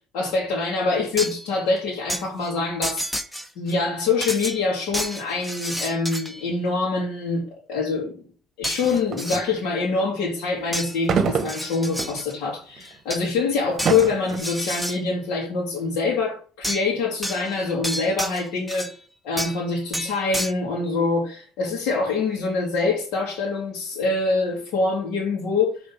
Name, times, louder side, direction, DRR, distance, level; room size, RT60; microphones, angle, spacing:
voice 1, 0.0-3.0 3.6-8.2 8.6-18.9 19.2-25.8, left 4 dB, 75° left, 2.3 m, -25 dB
sound 1, 1.2-1.5 2.1-2.2 2.8-3.8 4.2-6.5 8.6-9.5 10.7-11.0 11.4-12.3 12.8-13.3 13.8-15.0 16.6-16.9 17.2-19.0 19.4-19.7 19.9-20.5, equal, 5° left, 0.7 m, -30 dB
sound 2, 8.8-9.5 11.0-12.2 12.8-12.9 13.6-14.4, right 6 dB, 45° right, 1.0 m, -25 dB
6.0 x 3.8 x 5.6 m
cardioid pair, 115°, 0 cm